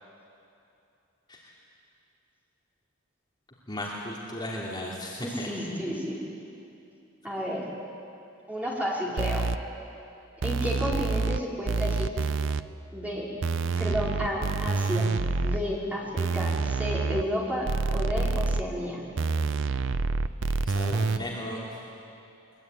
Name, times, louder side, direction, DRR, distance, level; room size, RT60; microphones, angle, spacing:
voice 1, 3.7-5.5 20.6-21.7, left 1 dB, 20° left, -5 dB, 2.9 m, -35 dB
voice 2, 5.2-6.2 7.2-7.7 8.5-9.4 10.4-12.1 12.9-13.3 13.8-15.1 15.4-19.0, equal, 5° right, -5 dB, 4.4 m, -31 dB
sound 1, 9.2-9.6 10.4-11.4 11.7-12.6 13.4-15.6 16.2-17.2 17.7-18.6 19.2-21.2, right 4 dB, 65° right, 0.6 m, -27 dB
22.5 x 22.0 x 9.3 m, 2.7 s
head